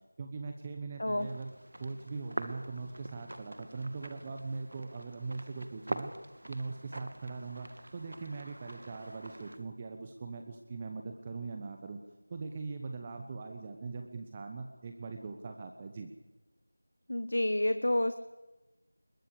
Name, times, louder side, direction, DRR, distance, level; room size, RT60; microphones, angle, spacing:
voice 1, 0.2-1.5 1.8-6.1 6.5-12.0 12.3-16.1, right 4 dB, 15° right, 5 dB, 1.1 m, -41 dB
sound 1, 1.2-9.6, right 1 dB, 60° right, 2.4 m, -44 dB
voice 2, 17.1-18.2, left 1 dB, 60° left, 11 dB, 1.2 m, -29 dB
21.5 x 21.5 x 8.5 m, 1.1 s
figure-of-eight pair, 170°, 0 cm